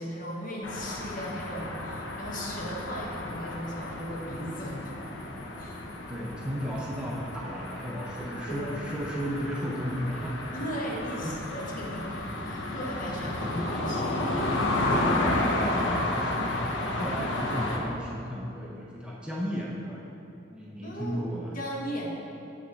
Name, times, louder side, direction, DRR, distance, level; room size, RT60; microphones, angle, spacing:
voice 1, 0.0-4.9 5.6-5.8 8.5-8.7 10.5-12.1 12.4-14.2 20.8-21.2 21.5-22.1, equal, 45° left, -3 dB, 1.1 m, -37 dB
sound 1, 0.6-17.8, left 1 dB, 75° left, 0.8 m, -32 dB
voice 2, 6.1-10.4 11.2-11.4 13.4-13.9 14.8-20.0 20.5-21.5, equal, 5° right, -5 dB, 0.5 m, -35 dB
6.9 x 5.9 x 3.8 m, 2.8 s
head